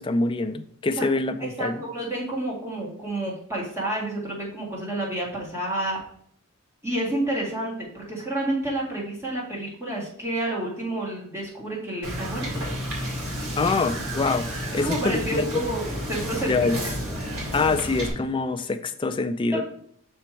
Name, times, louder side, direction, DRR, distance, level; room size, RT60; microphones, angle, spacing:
voice 1, 0.0-1.8 13.6-14.5 14.7-15.6 16.5-16.8 17.5-19.6, left 3 dB, 20° left, 8 dB, 0.4 m, -25 dB
voice 2, 1.4-6.0 6.8-12.6 14.7-16.5 16.8-16.9 19.5-19.6, right 1 dB, 10° right, -4 dB, 2.0 m, -29 dB
Wind / Boat Water vehicle, 12.0-18.1, equal, 75° right, 2.3 m, -31 dB
6.1 x 4.5 x 4.5 m, 0.63 s
head